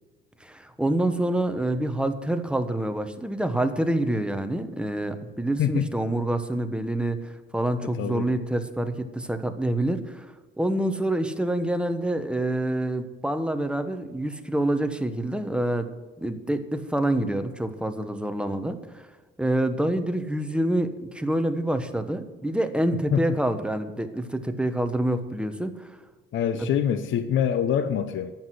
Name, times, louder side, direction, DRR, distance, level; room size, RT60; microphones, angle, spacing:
voice 1, 0.4-15.9 16.2-19.1 19.4-26.0 26.6-26.7, right 1 dB, 5° right, 1.3 m, -27 dB
voice 2, 8.0-8.3 23.1-23.2 26.3-28.3, left 9 dB, 75° left, 0.8 m, -25 dB
10.5 x 8.2 x 8.1 m
cardioid pair, 90°, 20 cm